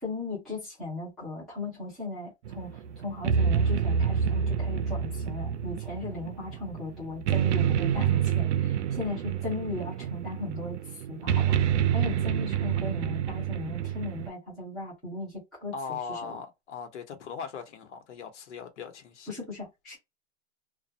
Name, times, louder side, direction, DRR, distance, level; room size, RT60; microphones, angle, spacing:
voice 1, 0.0-2.7 3.0-11.6 11.9-15.7 16.2-16.4 19.3-20.0, left 3 dB, ahead, 0.4 m, -37 dB
sound 1, 2.5-14.3, right 8 dB, 85° right, 0.5 m, -28 dB
voice 2, 15.7-19.3, left 5 dB, 85° left, 1.0 m, -39 dB
2.3 x 2.1 x 2.6 m
supercardioid pair, 175°, 34 cm